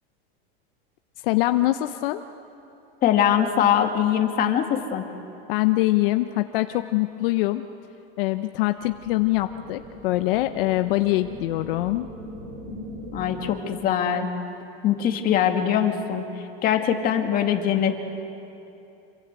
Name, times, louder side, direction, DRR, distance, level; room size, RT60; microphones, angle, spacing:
voice 1, 1.2-2.2 5.5-7.6 8.2-12.1, left 17 dB, 65° left, 9 dB, 0.9 m, -23 dB
voice 2, 3.0-5.1 13.1-14.3 14.8-18.0, left 9 dB, 30° left, 4 dB, 2.0 m, -22 dB
sound 1, 8.8-13.8, equal, 55° right, 5.9 m, -40 dB
26.5 x 23.5 x 8.2 m, 2.8 s
supercardioid pair, 165°, 30 cm